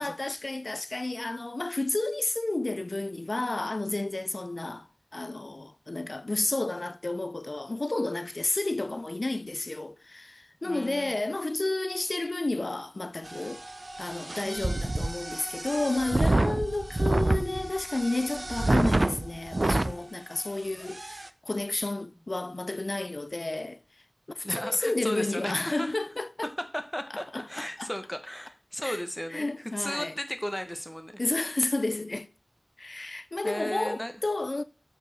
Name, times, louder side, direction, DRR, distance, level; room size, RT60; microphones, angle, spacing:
voice 1, 0.0-4.9 5.1-13.6 14.0-23.8 24.3-26.5 27.3-27.9 28.8-29.0 29.3-30.1 31.2-32.3 32.8-34.6, left 2 dB, 75° left, 0.3 m, -31 dB
voice 2, 10.6-11.2 14.4-14.9 20.4-20.5 24.4-25.9 26.7-31.2 33.0-33.1 33.4-34.1, equal, 15° left, 0.8 m, -36 dB
sound 1, 13.3-19.9 20.5-20.6 20.8-21.3, right 2 dB, 65° right, 0.3 m, -28 dB
5.2 x 4.7 x 4.0 m
wide cardioid pair, 40°, 0 cm